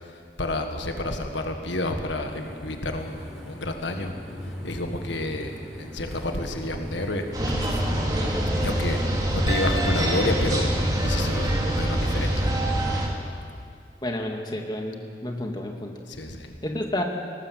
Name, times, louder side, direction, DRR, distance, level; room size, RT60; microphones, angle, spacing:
voice 1, 0.0-4.1 4.6-5.5 5.8-7.2 7.6-7.8 8.6-9.0 9.3-10.7 11.0-12.5 16.1-16.6, left 1 dB, 90° left, 4 dB, 1.7 m, -30 dB
sound 1, 2.2-12.4, left 1 dB, ahead, 5.0 m, -40 dB
sound 2, 7.3-13.1, right 1 dB, 20° right, 2.7 m, -24 dB
voice 2, 14.0-15.9 16.6-17.0, left 1 dB, 25° left, 2 dB, 2.0 m, -30 dB
19.0 x 19.0 x 7.7 m, 2.3 s
head